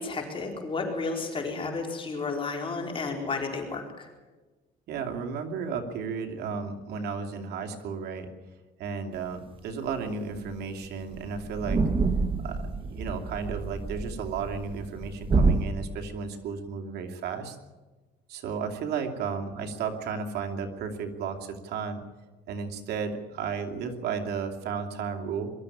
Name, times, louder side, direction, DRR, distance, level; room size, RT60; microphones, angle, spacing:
voice 1, 0.0-4.1, left 4 dB, 30° left, 1 dB, 4.5 m, -32 dB
voice 2, 4.9-8.3 8.8-11.9 12.4-17.6 18.3-22.0 22.5-25.5, right 5 dB, 75° right, 4 dB, 2.8 m, -33 dB
sound 1, 10.0-10.1 10.3-10.5 10.8-10.9 11.1-15.6, right 3 dB, 30° right, 1.4 m, -27 dB
22.5 x 13.0 x 10.0 m, 1.2 s
cardioid pair, 110°, 17 cm